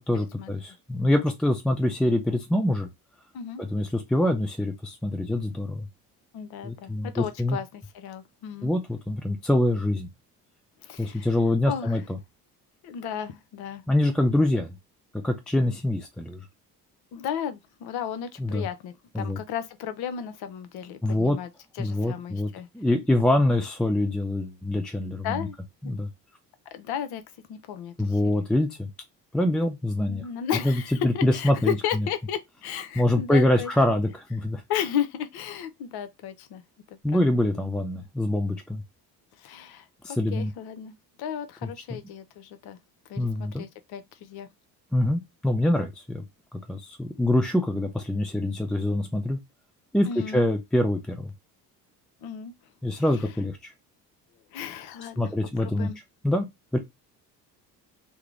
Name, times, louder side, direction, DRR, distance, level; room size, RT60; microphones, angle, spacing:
voice 1, 0.0-2.9 3.6-5.9 6.6-7.6 8.6-10.1 11.0-12.2 13.9-14.8 15.2-16.4 18.4-18.7 19.1-19.4 21.0-21.4 21.8-22.5 22.7-25.5 25.8-26.1 28.0-28.9 29.3-30.2 30.6-32.1 33.0-34.6 37.0-38.8 40.0-40.5 41.6-42.0 43.2-43.6 44.9-46.2 46.5-49.4 49.9-51.3 52.8-53.7 55.2-55.9 56.2-56.8, left 1 dB, ahead, 0.3 m, -25 dB
voice 2, 6.3-8.7 10.8-11.3 11.7-12.0 12.8-13.8 17.1-21.5 21.8-22.7 25.2-25.6 26.7-27.2 27.5-28.2 30.0-33.7 34.7-36.6 37.1-37.3 39.4-39.9 40.3-42.8 43.1-44.5 50.0-50.4 52.2-52.5 52.9-53.0 54.5-56.0, left 9 dB, 50° left, 0.7 m, -34 dB
3.5 x 2.0 x 3.0 m
figure-of-eight pair, 50°, 50 cm